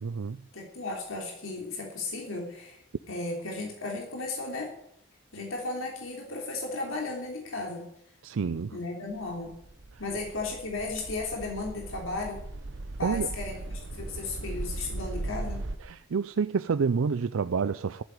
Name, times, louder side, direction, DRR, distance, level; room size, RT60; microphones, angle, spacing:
voice 1, 0.0-0.4 8.2-8.7 13.0-13.3 15.8-18.0, right 5 dB, 85° right, 0.5 m, -28 dB
voice 2, 0.5-2.8 3.1-4.7 5.3-7.8 8.7-9.5 10.0-12.4 13.0-15.6, left 3 dB, 80° left, 3.4 m, -35 dB
sound 1, 9.2-15.8, right 2 dB, 60° right, 1.0 m, -38 dB
14.5 x 8.1 x 9.5 m
head